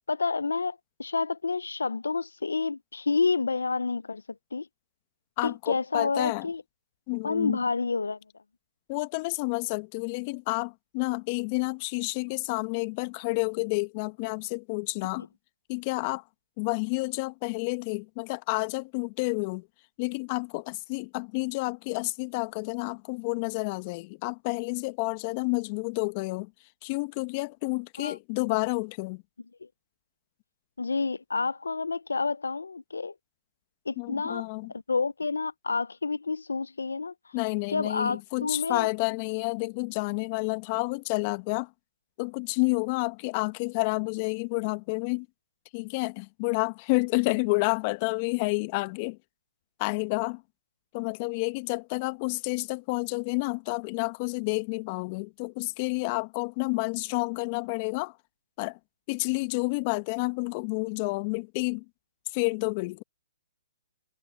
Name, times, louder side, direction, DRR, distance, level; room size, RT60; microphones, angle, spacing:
voice 1, 0.0-4.7 5.4-6.6 7.2-8.2 28.0-28.2 29.6-29.7 30.8-33.1 33.9-37.4 37.7-38.9, left 4 dB, 85° left, 0.5 m, -29 dB
voice 2, 5.4-6.5 7.1-7.6 8.9-15.3 15.7-16.2 16.6-19.7 20.0-26.5 26.8-29.2 34.0-34.7 37.3-41.7 42.2-45.3 45.7-49.2 49.8-50.4 50.9-58.2 58.6-58.8 59.1-61.8 62.3-63.0, left 29 dB, 35° left, 1.4 m, -30 dB
hypercardioid pair, 135°, 0 cm